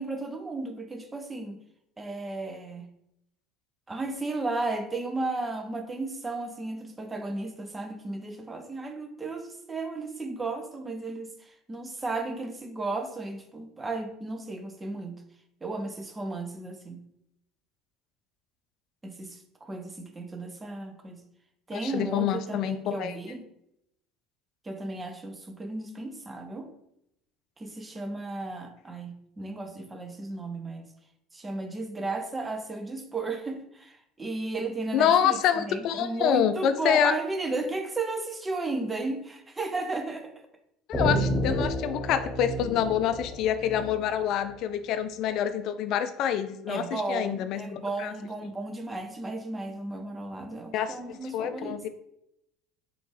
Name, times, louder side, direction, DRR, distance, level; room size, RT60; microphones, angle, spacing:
voice 1, 0.0-1.6 2.0-2.9 3.9-15.2 15.6-17.0 19.0-21.2 21.7-23.5 24.6-26.7 27.6-30.9 31.3-40.3 46.7-51.9, right 2 dB, 20° right, 7 dB, 0.7 m, -34 dB
voice 2, 21.7-23.1 34.9-37.1 40.9-48.1 50.7-51.9, left 9 dB, 60° left, 11 dB, 0.3 m, -27 dB
sound 1, 40.9-44.5, equal, 15° left, 0.8 m, -30 dB
3.8 x 3.4 x 3.2 m, 0.78 s
hypercardioid pair, 75°, 0 cm